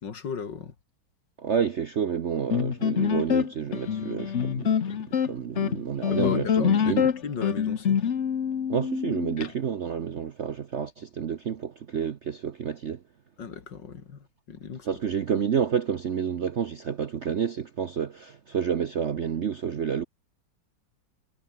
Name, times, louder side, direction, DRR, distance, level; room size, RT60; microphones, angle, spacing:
voice 1, 0.0-0.7 6.1-8.0 13.4-15.0, left 6 dB, 65° left, 2.8 m, -36 dB
voice 2, 1.4-7.1 8.7-13.0 14.9-20.0, right 7 dB, 55° right, 0.8 m, -29 dB
sound 1, 2.5-9.5, left 8 dB, 45° left, 1.1 m, -25 dB
omnidirectional pair, 2.1 m